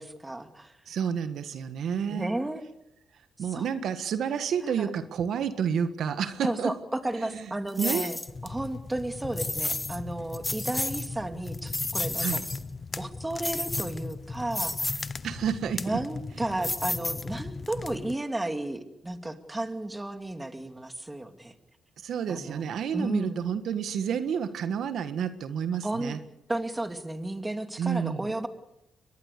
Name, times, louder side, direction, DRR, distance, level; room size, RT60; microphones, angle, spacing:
voice 1, 0.0-0.8 2.1-2.6 3.5-3.7 4.6-4.9 6.4-8.2 8.4-12.4 13.0-14.9 15.8-21.5 22.3-23.4 25.8-26.2 26.5-28.5, right 1 dB, 15° right, 8 dB, 2.5 m, -33 dB
voice 2, 0.9-2.3 3.4-6.7 7.3-7.5 7.8-8.1 12.2-12.4 15.2-16.0 22.0-26.2 27.8-28.3, right 7 dB, 70° right, 11 dB, 1.6 m, -30 dB
sound 1, 7.8-8.3 9.4-10.0 10.3-11.1 11.5-12.6 13.4-14.1 14.5-15.1 16.6-17.5, left 2 dB, 15° left, 1.4 m, -31 dB
sound 2, 8.3-18.2, left 4 dB, 35° left, 1.0 m, -39 dB
24.0 x 20.5 x 6.8 m, 0.86 s
cardioid pair, 80°, 0 cm